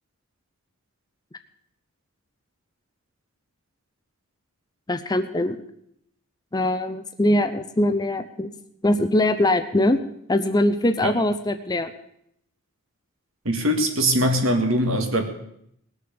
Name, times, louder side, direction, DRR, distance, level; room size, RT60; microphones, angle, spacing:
voice 1, 4.9-5.6 6.5-8.5 8.8-10.0 10.3-11.9, left 1 dB, 20° left, 9 dB, 0.6 m, -22 dB
voice 2, 13.5-15.2, equal, 65° right, 5 dB, 2.0 m, -21 dB
19.0 x 6.7 x 6.9 m, 0.74 s
head